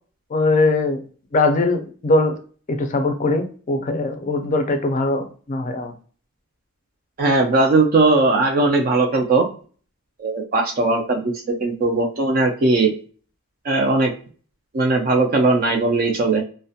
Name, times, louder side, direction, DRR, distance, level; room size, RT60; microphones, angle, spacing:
voice 1, 0.3-1.0 1.3-2.3 2.7-5.9, left 2 dB, 35° left, 6 dB, 0.4 m, -21 dB
voice 2, 7.2-9.5 10.2-12.9 13.6-14.1 14.7-16.4, right 3 dB, 40° right, 1 dB, 0.4 m, -18 dB
2.3 x 2.1 x 2.7 m, 0.41 s
head